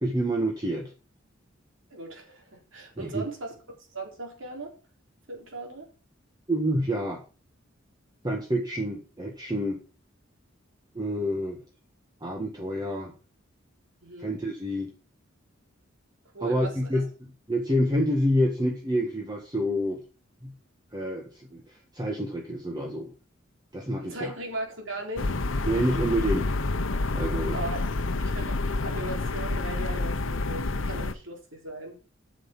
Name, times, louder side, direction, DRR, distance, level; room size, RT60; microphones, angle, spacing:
voice 1, 0.0-0.9 3.0-3.2 6.5-7.2 8.2-9.8 10.9-11.6 12.2-13.1 14.2-14.9 16.4-17.0 17.5-20.0 20.4-20.5 20.9-23.1 23.7-24.3 25.7-26.5 27.1-27.6, equal, 20° right, 1 dB, 1.5 m, -28 dB
voice 2, 1.9-3.5 3.9-4.7 5.3-5.9 14.0-14.3 16.3-17.0 24.0-25.3 27.5-32.0, right 2 dB, 70° right, 1 dB, 3.7 m, -38 dB
sound 1, 25.2-31.1, left 2 dB, 70° left, 0.9 m, -28 dB
9.1 x 6.4 x 6.0 m, 0.36 s
head